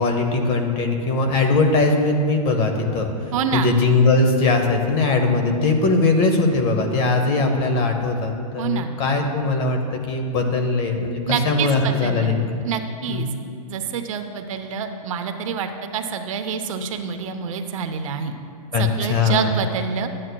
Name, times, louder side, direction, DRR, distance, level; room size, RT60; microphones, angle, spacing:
voice 1, 0.0-3.1 3.5-12.6 13.1-13.3 18.7-19.5, left 3 dB, 30° left, 4 dB, 0.8 m, -20 dB
voice 2, 3.3-3.7 8.6-8.9 11.3-12.3 12.6-13.3 13.7-18.3 18.8-20.1, right 7 dB, 60° right, 7 dB, 0.7 m, -27 dB
12.5 x 8.7 x 2.2 m, 2.3 s
hypercardioid pair, 155°, 19 cm